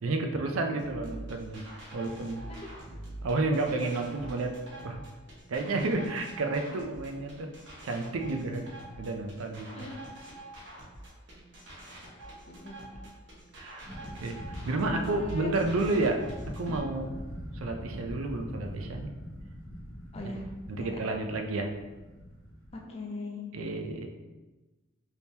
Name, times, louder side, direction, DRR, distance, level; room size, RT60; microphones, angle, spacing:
voice 1, 0.0-1.6 1.9-2.5 3.2-4.6 4.8-5.0 5.5-7.6 7.8-9.9 13.5-13.9 14.2-16.2 16.6-17.1 17.5-19.1 20.7-21.7 23.5-24.1, right 2 dB, 85° right, 4 dB, 0.4 m, -31 dB
sound 1, 0.8-16.8, right 1 dB, 60° right, 0.9 m, -46 dB
voice 2, 9.7-10.2 12.0-12.1 12.5-12.8 14.8-15.5 20.1-21.0 22.7-23.6, left 2 dB, 30° left, -1 dB, 0.5 m, -41 dB
sound 2, 13.8-22.8, equal, 65° left, 0.9 m, -42 dB
3.5 x 2.8 x 2.7 m, 1.2 s
head